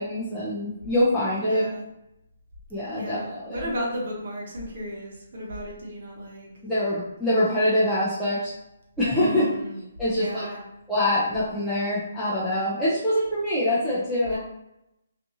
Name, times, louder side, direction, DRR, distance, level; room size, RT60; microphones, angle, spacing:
voice 1, 0.0-1.6 2.7-3.7 6.6-8.5 9.0-9.4 10.0-10.6 10.9-14.4, left 1 dB, ahead, -13 dB, 0.5 m, -24 dB
voice 2, 1.4-1.8 2.9-6.5 9.1-9.8 10.1-10.6 14.2-14.4, equal, 60° right, -3 dB, 1.0 m, -34 dB
2.7 x 2.4 x 2.7 m, 0.86 s
hypercardioid pair, 170°, 0 cm